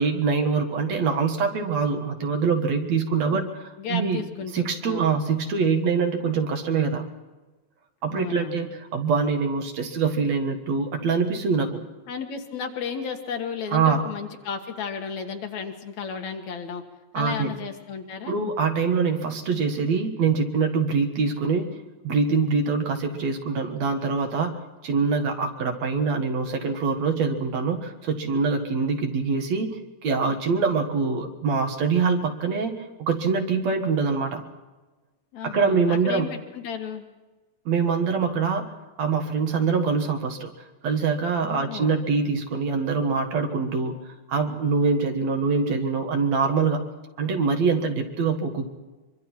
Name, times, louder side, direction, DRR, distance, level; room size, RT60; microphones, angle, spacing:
voice 1, 0.0-4.2 4.5-7.1 8.0-11.9 13.7-14.0 17.1-17.5 18.3-21.8 22.0-34.4 35.4-36.3 37.7-38.7 39.0-40.5 40.8-44.0 44.3-46.9 47.2-48.7, right 5 dB, 65° right, 5 dB, 2.8 m, -24 dB
voice 2, 3.8-5.1 8.1-8.7 12.1-16.8 17.1-18.3 35.3-37.0 41.4-42.0, left 6 dB, 70° left, 4 dB, 2.9 m, -34 dB
24.0 x 24.0 x 4.5 m, 1.2 s
omnidirectional pair, 3.3 m